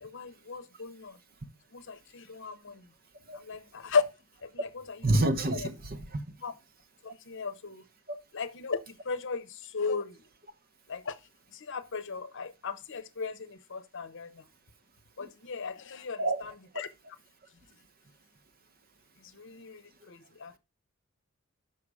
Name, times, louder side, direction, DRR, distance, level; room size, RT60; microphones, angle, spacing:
voice 1, 0.0-1.2 1.7-2.8 3.4-4.0 4.4-5.1 5.5-5.7 6.4-6.5 7.0-7.8 8.3-10.1 10.9-11.1 11.5-14.3 15.2-16.9 19.3-20.6, left 5 dB, 60° left, 0.8 m, -36 dB
voice 2, 5.0-6.2 15.2-15.3 16.2-16.4, right 1 dB, 45° right, 1.0 m, -28 dB
6.5 x 5.7 x 4.8 m
head